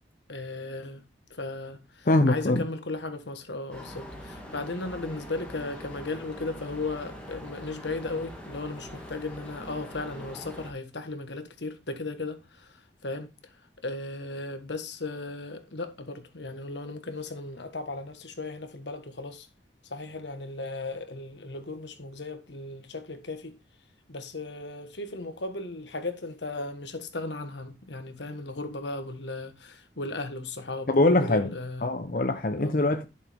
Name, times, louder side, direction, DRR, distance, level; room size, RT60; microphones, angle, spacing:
voice 1, 0.3-1.0 1.3-13.3 13.8-19.5 19.9-23.5 24.1-31.9 32.6-32.8, left 2 dB, 80° left, 1.5 m, -36 dB
voice 2, 2.1-2.6 30.9-31.5 31.8-33.0, left 2 dB, 50° left, 0.8 m, -23 dB
sound 1, 3.7-10.7, equal, 5° left, 2.7 m, -43 dB
11.5 x 6.6 x 3.5 m
head